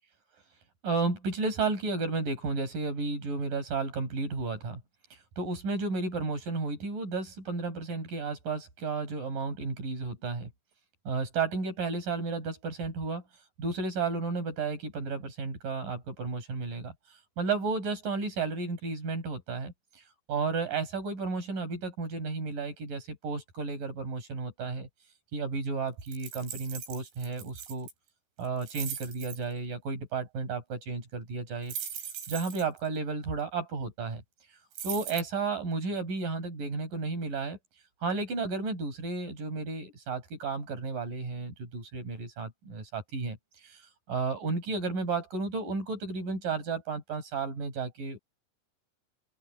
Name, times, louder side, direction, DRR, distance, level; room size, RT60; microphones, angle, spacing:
voice 1, 0.8-4.8 5.4-10.5 11.0-13.2 13.6-16.9 17.4-20.0 20.3-24.9 25.3-27.9 28.4-31.7 32.3-34.2 34.8-37.6 38.0-43.4 43.6-43.8 44.1-48.2, right 4 dB, 50° right, 6.9 m, -33 dB
sound 1, 26.1-27.9 28.5-29.4 31.7-32.8 34.7-35.2, right 8 dB, 85° right, 5.8 m, -39 dB
open air
omnidirectional pair, 5.2 m